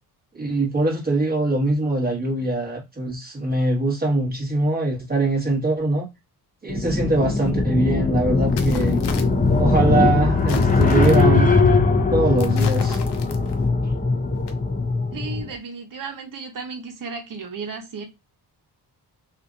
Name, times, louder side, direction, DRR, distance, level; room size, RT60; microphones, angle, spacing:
voice 1, 0.3-6.1 6.6-9.0 9.6-11.5 12.1-13.0, right 2 dB, 25° right, 1.1 m, -22 dB
sound 1, 6.7-15.5, left 4 dB, 20° left, 0.6 m, -20 dB
sound 2, 7.4-7.5 8.4-9.6 10.4-11.4 12.4-13.7 14.3-14.5, left 8 dB, 85° left, 0.7 m, -37 dB
voice 2, 15.1-18.0, right 5 dB, 55° right, 1.1 m, -34 dB
2.8 x 2.5 x 3.7 m
cardioid pair, 100°, 40 cm